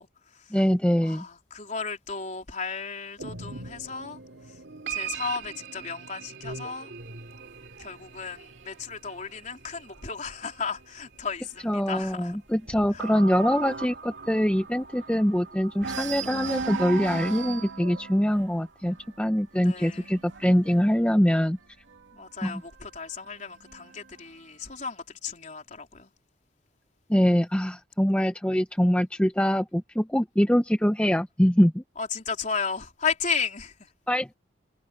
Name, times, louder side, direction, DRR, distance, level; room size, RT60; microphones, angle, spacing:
voice 1, 0.0-0.6 1.0-4.2 4.5-4.6 4.9-6.9 7.8-12.4 12.9-13.1 19.6-20.1 22.1-26.1 32.0-33.9, left 5 dB, 40° left, 4.0 m, -34 dB
voice 2, 0.5-1.2 11.6-21.6 22.4-22.6 27.1-31.8 34.1-34.3, equal, 5° left, 0.7 m, -24 dB
sound 1, 3.2-11.4 11.7-11.9 12.7-19.2, right 5 dB, 70° right, 2.5 m, -41 dB
sound 2, 7.0-10.6 11.0-11.4 11.6-11.7 12.1-15.4 15.8-22.3 23.2-24.2, right 5 dB, 90° right, 2.6 m, -38 dB
head